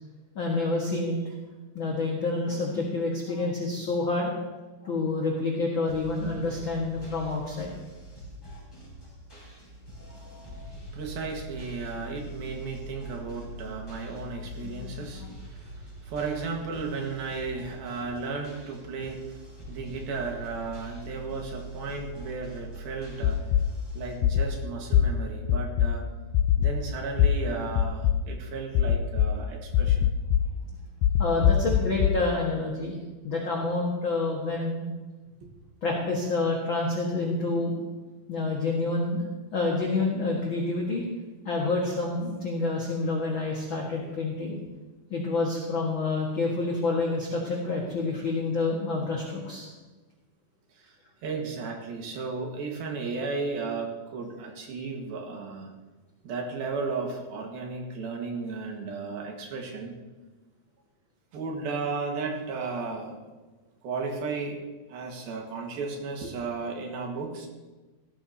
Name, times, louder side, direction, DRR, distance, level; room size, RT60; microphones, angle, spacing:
voice 1, 0.3-1.2 1.7-4.3 4.8-7.7 10.0-10.6 14.8-15.3 31.2-33.0 33.2-34.9 35.8-37.7 38.3-39.2 39.5-41.0 41.4-44.6 45.1-49.7, left 3 dB, 50° left, -2 dB, 1.6 m, -28 dB
sound 1, 5.9-24.2, equal, 5° left, 4.4 m, -43 dB
voice 2, 10.9-19.4 19.7-23.5 23.9-26.1 26.6-30.1 35.4-35.5 50.8-50.9 51.2-55.7 56.2-59.9 61.3-63.2 63.8-67.5, right 4 dB, 80° right, 2 dB, 3.4 m, -34 dB
sound 2, 23.2-23.6 24.2-24.5 24.9-25.0 25.5-25.9 26.3-26.7 27.2-27.3 27.8-28.1 28.8-29.3 29.7-30.4 31.0-32.1, left 11 dB, 85° left, 1.8 m, -21 dB
17.5 x 13.5 x 2.8 m, 1.2 s
omnidirectional pair, 4.3 m